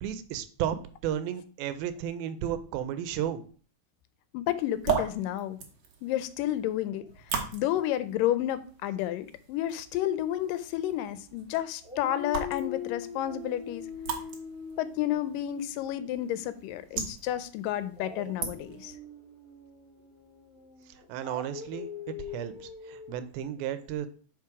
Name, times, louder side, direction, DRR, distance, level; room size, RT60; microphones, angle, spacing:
voice 1, 0.0-0.8 1.0-3.4 20.9-21.9 22.2-24.1, right 10 dB, 90° right, 11 dB, 2.5 m, -33 dB
voice 2, 4.3-5.6 6.0-13.9 14.8-19.0, left 12 dB, 80° left, 13 dB, 2.1 m, -31 dB
sound 1, 4.6-19.0, right 7 dB, 60° right, 2.2 m, -39 dB
Dog, 9.9-11.4 11.8-16.9 17.9-23.1, left 6 dB, 5° right, 1.0 m, -43 dB
5.9 x 5.1 x 4.8 m, 0.41 s
omnidirectional pair, 4.2 m